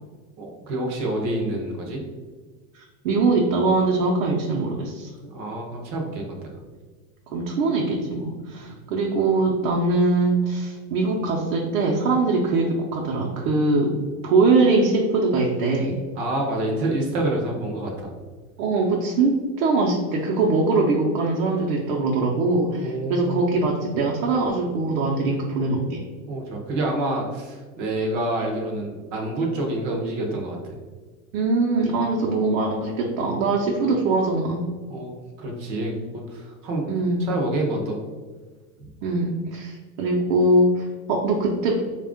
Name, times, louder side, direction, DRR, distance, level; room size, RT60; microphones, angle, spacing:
voice 1, 0.4-2.0 5.2-6.5 8.6-8.7 16.2-18.1 22.8-23.5 26.3-30.7 34.9-35.1 35.4-35.9 36.3-36.9 37.2-38.0, right 1 dB, 30° right, 1 dB, 0.5 m, -27 dB
voice 2, 2.7-5.1 7.3-13.9 14.2-16.0 18.6-26.0 31.3-34.7 36.9-37.2 39.0-41.8, right 3 dB, 90° right, -2 dB, 0.8 m, -22 dB
4.2 x 2.4 x 3.5 m, 1.4 s
supercardioid pair, 180°, 41 cm